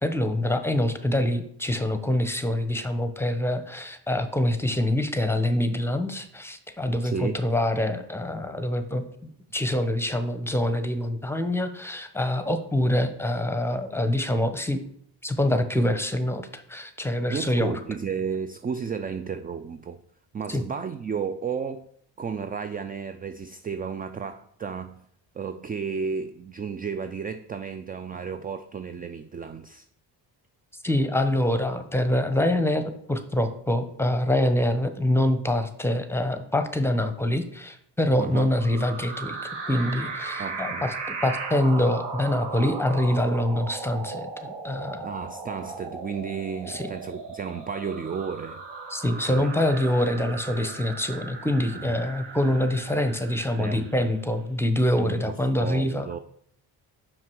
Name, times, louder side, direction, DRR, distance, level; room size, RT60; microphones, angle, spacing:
voice 1, 0.0-14.8 15.2-17.7 20.5-20.6 30.8-40.9 41.2-45.1 46.7-46.9 48.9-56.1, left 1 dB, 5° left, 0.9 m, -25 dB
voice 2, 7.0-7.4 17.3-20.0 20.3-21.9 22.2-25.0 25.3-29.9 38.2-38.6 40.4-40.9 45.0-48.6 49.2-49.5 51.7-52.0 53.6-54.1 55.0-56.2, right 6 dB, 20° right, 0.3 m, -33 dB
sound 1, 38.5-54.2, right 4 dB, 55° right, 1.8 m, -37 dB
5.8 x 5.3 x 4.6 m
supercardioid pair, 60°, 50 cm